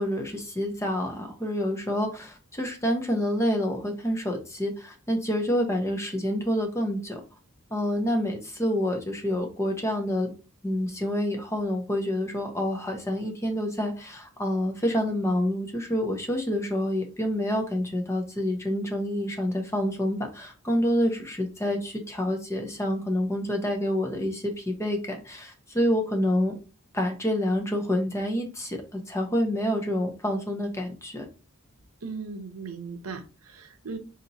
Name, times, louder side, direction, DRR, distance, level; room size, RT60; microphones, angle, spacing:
voice 1, 0.0-7.2 7.7-10.3 10.6-26.5 26.9-31.3, equal, 15° left, 3 dB, 0.7 m, -28 dB
voice 2, 32.0-34.0, right 4 dB, 75° right, 7 dB, 0.7 m, -38 dB
4.0 x 2.9 x 2.7 m, 0.34 s
head